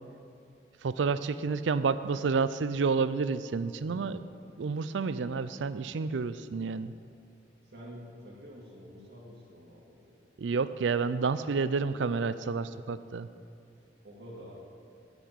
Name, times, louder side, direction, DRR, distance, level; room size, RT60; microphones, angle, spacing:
voice 1, 0.8-4.3 4.6-6.9 10.4-13.3, right 5 dB, 90° right, 14 dB, 0.4 m, -30 dB
voice 2, 7.6-10.2 14.0-14.6, equal, 65° right, -4 dB, 2.2 m, -48 dB
9.9 x 6.2 x 8.8 m, 2.5 s
head